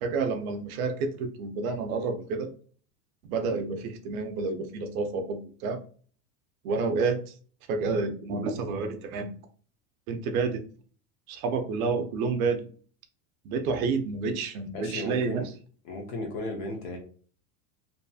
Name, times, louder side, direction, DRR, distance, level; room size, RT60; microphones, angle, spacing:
voice 1, 0.0-2.5 3.2-5.8 6.6-7.3 7.7-9.3 10.1-10.6 11.3-12.6 13.4-15.4, right 4 dB, 60° right, 6 dB, 0.6 m, -29 dB
voice 2, 14.7-15.5 15.8-17.0, left 2 dB, 40° left, 3 dB, 0.6 m, -35 dB
2.6 x 2.6 x 2.3 m, 0.43 s
supercardioid pair, 175°, 48 cm